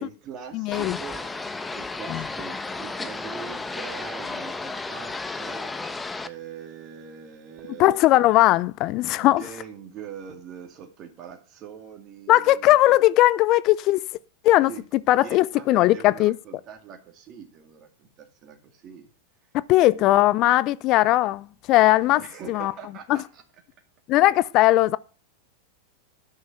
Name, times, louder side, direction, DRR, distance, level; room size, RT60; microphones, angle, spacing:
voice 1, 0.0-1.3 1.7-5.7 6.2-8.0 9.1-13.0 14.6-14.8 15.1-19.1 19.4-20.3 22.1-23.4, right 7 dB, 40° right, 2.1 m, -43 dB
voice 2, 0.5-1.0 2.1-2.2 7.8-9.4 12.3-14.0 14.4-14.7 15.1-16.4 19.7-22.2 22.5-22.7 24.1-25.0, left 16 dB, 45° left, 0.5 m, -19 dB
sound 1, 0.7-6.3, left 3 dB, 10° left, 1.1 m, -33 dB
11.5 x 6.5 x 5.8 m
hypercardioid pair, 100°, 0 cm